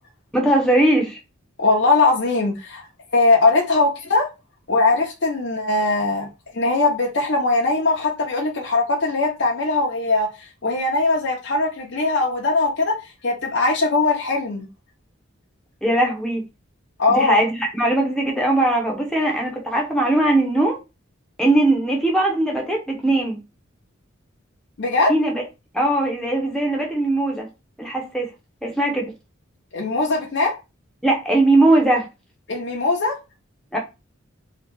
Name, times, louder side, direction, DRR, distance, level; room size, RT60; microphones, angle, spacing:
voice 1, 0.3-1.2 15.8-16.4 17.1-20.8 21.4-23.4 25.1-25.4 25.7-27.5 27.8-28.3 28.6-29.1 31.0-32.1 33.7-33.8, right 1 dB, 5° left, 0.7 m, -20 dB
voice 2, 1.6-2.9 3.1-4.3 4.7-6.3 6.5-10.3 10.6-12.9 13.2-14.7 17.0-17.4 24.8-25.1 29.7-30.5 32.5-33.2, left 3 dB, 60° left, 0.7 m, -20 dB
2.8 x 2.3 x 3.5 m
head